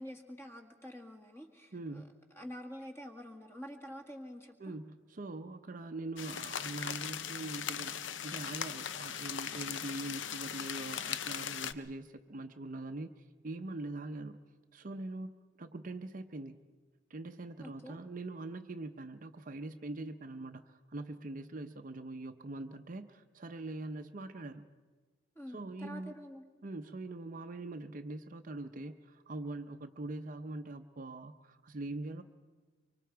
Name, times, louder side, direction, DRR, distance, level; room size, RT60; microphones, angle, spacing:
voice 1, 0.0-2.0 2.4-4.7 17.6-18.0 25.4-26.4, equal, 15° left, 3 dB, 1.8 m, -47 dB
voice 2, 1.7-2.1 4.6-14.4 14.7-16.6 17.1-24.7 25.5-26.1 26.6-32.2, right 2 dB, 45° right, 7 dB, 0.7 m, -43 dB
sound 1, 6.2-11.7, left 9 dB, 80° left, 0.6 m, -39 dB
24.5 x 24.5 x 4.6 m, 1.3 s
head